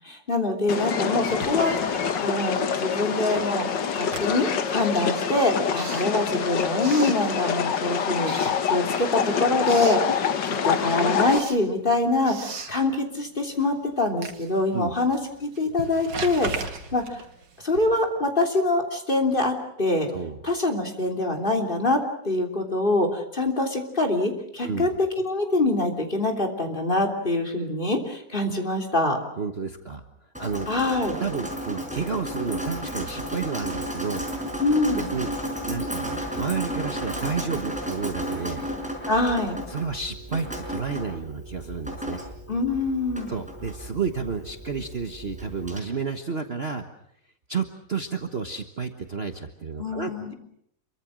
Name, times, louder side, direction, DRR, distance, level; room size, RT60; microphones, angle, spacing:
voice 1, 0.0-3.7 3.9-17.2 17.6-20.1 20.4-29.2 30.7-31.2 34.6-35.0 39.1-39.6 42.5-43.3 49.8-50.3, left 2 dB, 25° left, 3 dB, 3.3 m, -25 dB
sound 1, 0.7-11.4, left 7 dB, 75° left, 2.0 m, -26 dB
Writing, 1.1-2.7 3.0-7.8 8.2-9.2 9.4-10.1 10.5-18.2, right 4 dB, 75° right, 2.8 m, -39 dB
voice 2, 20.1-20.4 24.6-24.9 29.4-30.0 30.4-30.7 31.2-34.3 34.9-35.3 35.7-38.6 39.7-42.2 43.3-46.9 47.5-50.3, right 5 dB, 35° right, 6 dB, 1.4 m, -31 dB
Drip, 30.3-45.8, equal, 5° right, 5.5 m, -33 dB
27.5 x 23.5 x 6.3 m, 0.72 s
omnidirectional pair, 2.0 m